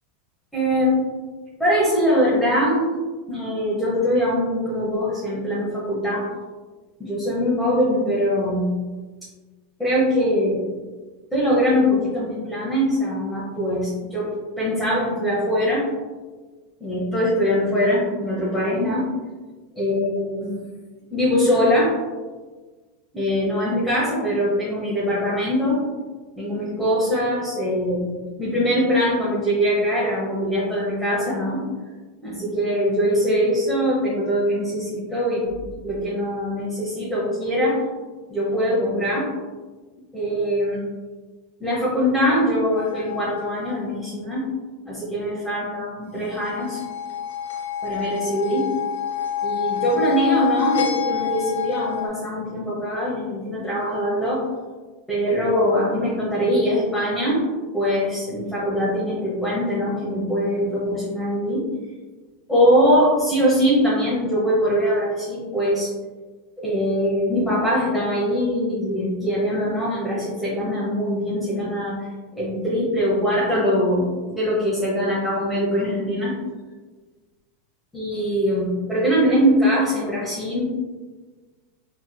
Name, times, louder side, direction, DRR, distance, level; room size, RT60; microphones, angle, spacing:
voice 1, 0.5-1.1 1.6-2.8 3.3-6.3 7.0-8.8 9.8-10.7 11.3-14.3 14.6-15.8 16.8-19.1 19.7-20.6 21.1-21.9 23.1-25.8 26.4-31.6 32.2-37.8 38.3-39.3 40.1-40.9 41.6-44.5 44.8-46.8 47.8-48.7 49.4-54.5 55.1-57.4 57.7-61.7 62.5-65.9 66.6-72.0 72.3-76.3 77.9-80.8, equal, 5° left, -9 dB, 0.9 m, -22 dB
sound 1, 42.8-43.8 46.3-52.1, left 8 dB, 85° left, 0.5 m, -27 dB
3.5 x 2.9 x 2.2 m, 1.3 s
hypercardioid pair, 115°, 0 cm